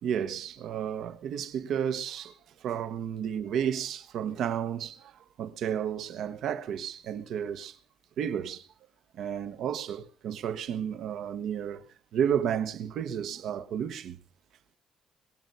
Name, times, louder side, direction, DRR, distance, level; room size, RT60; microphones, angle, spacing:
voice 1, 0.0-5.1 5.4-7.8 8.2-8.7 9.1-11.8 12.1-14.2, right 8 dB, 80° right, 1.1 m, -32 dB
22.5 x 8.0 x 5.4 m
cardioid pair, 90°, 0 cm